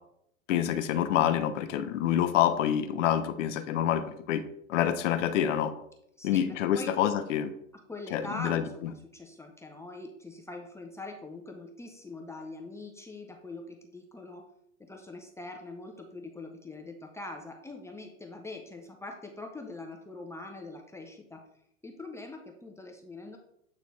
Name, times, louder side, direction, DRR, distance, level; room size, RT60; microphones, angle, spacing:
voice 1, 0.5-4.4 4.7-5.7 6.2-7.5 8.1-8.6, left 10 dB, 65° left, 10 dB, 0.8 m, -27 dB
voice 2, 6.2-6.9 7.9-14.5 14.8-21.4 21.8-23.4, left 2 dB, 5° left, 2 dB, 0.6 m, -43 dB
8.7 x 3.9 x 3.1 m, 0.75 s
hypercardioid pair, 105°, 40 cm